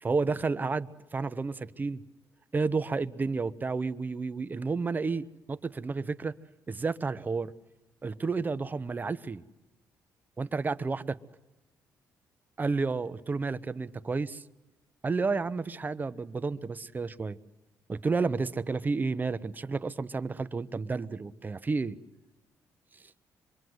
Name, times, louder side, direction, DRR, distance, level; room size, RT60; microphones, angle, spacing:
voice 1, 0.0-2.0 2.5-6.3 6.7-7.5 8.0-9.4 10.4-11.2 12.6-14.4 15.0-17.4 17.9-21.9, right 4 dB, 25° right, 13 dB, 0.9 m, -31 dB
26.5 x 23.5 x 8.0 m, 1.0 s
cardioid pair, 100°, 7 cm